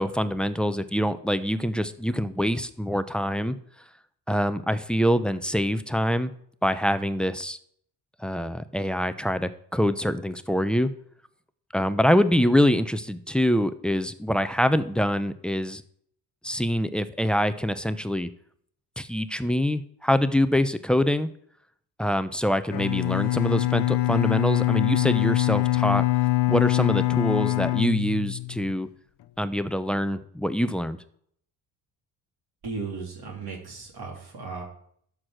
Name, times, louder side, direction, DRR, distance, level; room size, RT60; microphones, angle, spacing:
voice 1, 0.0-3.6 4.3-6.3 6.6-7.6 8.2-10.9 11.7-15.8 16.4-18.3 19.0-21.3 22.0-26.1 26.5-28.9 29.4-31.0, equal, ahead, 12 dB, 0.7 m, -25 dB
Bowed string instrument, 22.7-28.7, left 18 dB, 60° left, 0.7 m, -24 dB
voice 2, 32.6-34.6, right 4 dB, 55° right, -1 dB, 3.4 m, -36 dB
12.5 x 4.9 x 6.2 m, 0.65 s
supercardioid pair, 60°, 46 cm